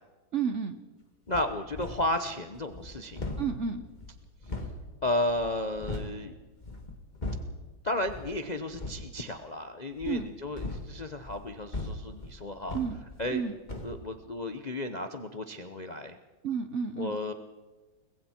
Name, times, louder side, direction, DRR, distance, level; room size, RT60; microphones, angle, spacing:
voice 1, 0.3-0.8 3.4-3.8 10.1-10.3 12.7-13.0 13.3-13.6 16.4-17.2, right 6 dB, 50° right, 8 dB, 1.0 m, -31 dB
voice 2, 1.3-3.4 5.0-6.3 7.8-12.8 13.2-13.4 13.8-16.2 17.0-17.3, left 1 dB, 40° left, 7 dB, 0.6 m, -33 dB
sound 1, 1.3-2.2 2.5-6.2 6.6-7.6 8.0-8.4 8.7-9.1 9.9-13.4 13.7-14.0, left 2 dB, 20° left, 2.2 m, -39 dB
29.5 x 21.5 x 4.5 m, 1.2 s
omnidirectional pair, 2.2 m